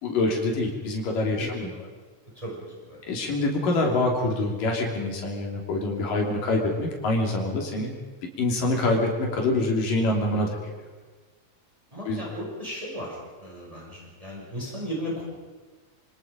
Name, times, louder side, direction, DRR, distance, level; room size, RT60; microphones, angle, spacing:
voice 1, 0.0-1.7 3.1-8.0 8.4-10.6 12.0-12.2, left 2 dB, 90° left, 0 dB, 4.6 m, -25 dB
voice 2, 2.4-3.0 11.9-13.2 13.4-15.3, equal, 10° right, -4 dB, 6.0 m, -35 dB
26.5 x 24.5 x 5.2 m, 1.4 s
omnidirectional pair, 3.7 m